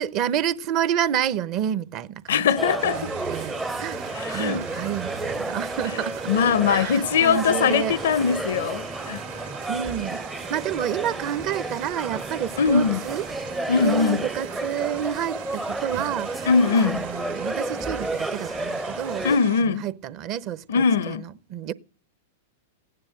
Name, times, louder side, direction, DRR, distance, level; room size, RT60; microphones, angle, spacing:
voice 1, 0.0-6.3 6.6-8.0 9.7-10.2 10.5-13.2 13.8-16.3 16.9-19.3 19.6-21.7, right 10 dB, 45° right, 0.9 m, -29 dB
voice 2, 2.3-3.1 4.1-4.6 6.3-9.2 12.6-13.0 13.7-14.3 16.5-17.1 19.2-19.9 20.7-21.2, left 6 dB, 70° left, 0.7 m, -21 dB
sound 1, 2.6-19.4, right 2 dB, 10° right, 0.6 m, -32 dB
sound 2, 2.8-19.6, right 10 dB, 65° right, 1.9 m, -40 dB
15.5 x 9.8 x 7.9 m
hypercardioid pair, 110°, 0 cm